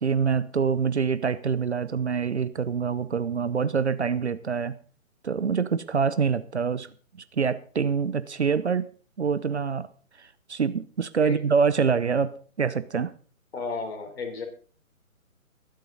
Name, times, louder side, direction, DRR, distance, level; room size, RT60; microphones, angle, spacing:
voice 1, 0.0-4.8 5.2-6.9 7.3-8.9 9.2-9.9 10.2-13.1, right 6 dB, 55° right, 0.8 m, -25 dB
voice 2, 13.5-14.4, left 4 dB, 45° left, 3.8 m, -33 dB
22.5 x 7.7 x 4.0 m
figure-of-eight pair, 140°, 41 cm